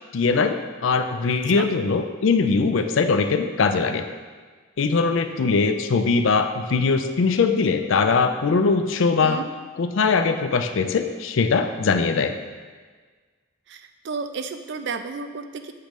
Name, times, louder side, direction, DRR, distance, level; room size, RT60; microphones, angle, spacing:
voice 1, 0.1-4.0 4.8-9.4 9.8-12.4, left 4 dB, 70° left, 8 dB, 0.4 m, -21 dB
voice 2, 13.7-15.7, right 4 dB, 55° right, 8 dB, 0.4 m, -32 dB
7.6 x 3.1 x 5.2 m, 1.5 s
head